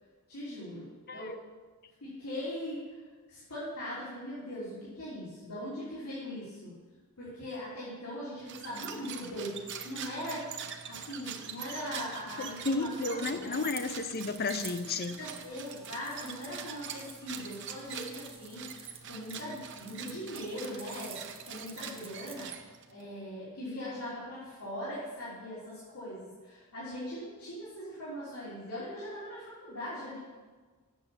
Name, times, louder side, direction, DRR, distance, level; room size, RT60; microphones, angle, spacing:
voice 1, 0.3-1.3 2.0-2.8 3.3-6.7 7.2-10.5 10.9-13.6 15.2-18.7 19.1-21.2 21.5-22.5 22.9-30.2, equal, 90° left, -11 dB, 3.4 m, -40 dB
sound 1, 8.4-23.0, right 8 dB, 55° right, 0.7 m, -44 dB
voice 2, 12.4-15.2, left 3 dB, 45° left, 10 dB, 0.6 m, -33 dB
sound 2, 13.5-22.4, right 7 dB, 25° right, 0.8 m, -50 dB
8.1 x 6.9 x 7.2 m, 1.4 s
head